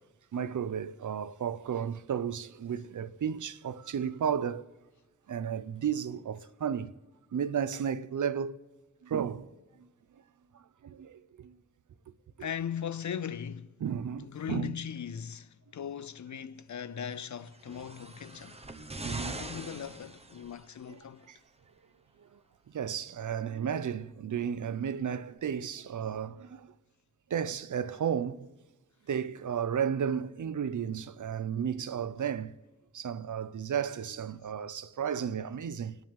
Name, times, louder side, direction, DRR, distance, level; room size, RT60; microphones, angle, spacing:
voice 1, 0.3-4.6 5.3-6.9 7.3-8.6 9.0-9.5 10.5-11.5 13.8-14.7 19.0-19.4 20.9-21.0 21.3-21.4 22.7-26.7 27.3-28.5 29.1-32.5 32.9-36.0, right 8 dB, 70° right, 0.6 m, -33 dB
voice 2, 12.4-13.8 14.2-18.7 19.2-21.3, left 8 dB, 65° left, 0.6 m, -39 dB
sound 1, 17.5-20.8 21.8-21.9, right 2 dB, 20° right, 0.8 m, -42 dB
29.5 x 10.5 x 3.7 m
wide cardioid pair, 135°, 31 cm